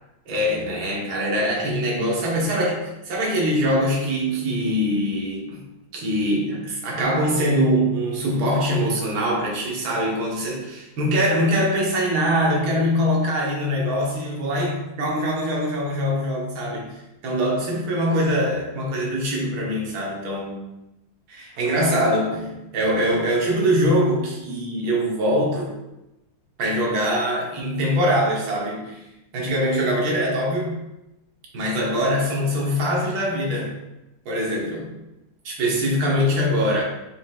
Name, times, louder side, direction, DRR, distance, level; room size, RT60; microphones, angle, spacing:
voice 1, 0.3-5.6 5.9-16.9 17.2-20.6 21.3-25.8 26.6-29.0 29.3-30.7 31.5-33.8 34.2-34.9 35.4-36.8, equal, 55° right, -3 dB, 1.3 m, -23 dB
6.1 x 3.1 x 2.2 m, 0.92 s
omnidirectional pair, 2.3 m